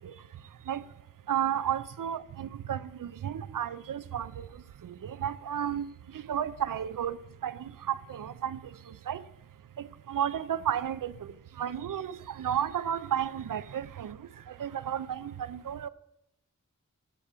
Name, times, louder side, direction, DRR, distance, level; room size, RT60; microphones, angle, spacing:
voice 1, 1.3-4.5 4.8-7.2 7.4-8.6 9.1-9.2 9.8-11.1 11.6-14.2 14.6-15.9, right 9 dB, 90° right, 0.5 m, -32 dB
9.1 x 7.1 x 4.9 m
wide cardioid pair, 70°, 32 cm